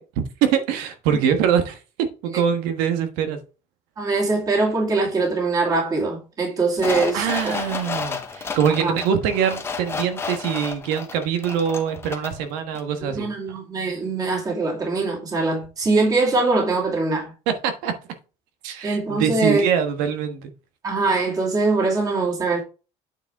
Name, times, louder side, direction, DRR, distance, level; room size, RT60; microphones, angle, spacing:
voice 1, 0.0-3.4 7.1-13.3 17.5-17.9 18.6-20.5, right 8 dB, 80° right, 1.4 m, -23 dB
voice 2, 4.0-7.5 8.8-8.9 13.0-17.3 18.8-19.6 20.8-22.6, right 3 dB, 25° right, 2.6 m, -22 dB
sound 1, 6.8-12.4 12.8-12.9, left 5 dB, 15° left, 0.9 m, -31 dB
9.0 x 4.9 x 3.6 m
cardioid pair, 160°, 14 cm